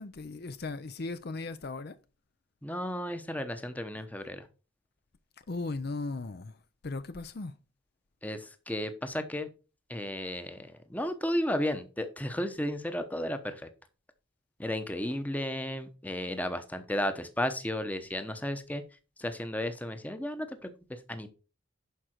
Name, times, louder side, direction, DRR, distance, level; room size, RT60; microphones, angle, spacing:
voice 1, 0.0-2.0 5.5-6.6 6.8-7.6, left 3 dB, 50° left, 0.5 m, -37 dB
voice 2, 2.6-4.5 8.2-9.5 9.9-13.7 14.6-18.8 19.2-21.3, left 1 dB, 10° left, 0.9 m, -34 dB
11.5 x 5.0 x 4.5 m
head